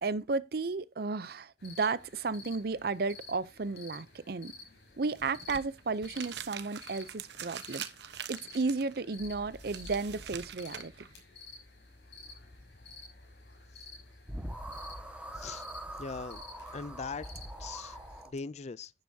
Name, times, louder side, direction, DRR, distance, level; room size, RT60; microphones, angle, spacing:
voice 1, 0.0-4.5 5.0-7.8 8.3-10.9, right 4 dB, 60° right, 0.6 m, -33 dB
sound 1, 1.6-18.2, left 3 dB, 75° left, 5.7 m, -52 dB
sound 2, 5.0-11.2, right 8 dB, 75° right, 1.1 m, -44 dB
sound 3, 9.2-10.8 13.9-14.0 14.3-18.3, right 1 dB, 10° right, 1.6 m, -44 dB
voice 2, 16.0-16.4 16.7-17.3 17.6-18.0 18.3-18.9, left 4 dB, 40° left, 0.4 m, -40 dB
11.0 x 10.5 x 2.8 m
head